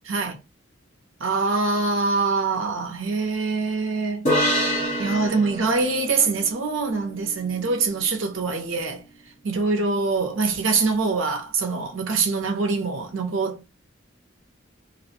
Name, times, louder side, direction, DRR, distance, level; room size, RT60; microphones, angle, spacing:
voice 1, 0.0-0.4 1.2-4.3 5.0-9.0 9.4-13.6, right 4 dB, 90° right, 0.7 m, -24 dB
sound 1, 4.3-7.7, equal, 40° left, 1.2 m, -27 dB
2.5 x 2.1 x 2.7 m
head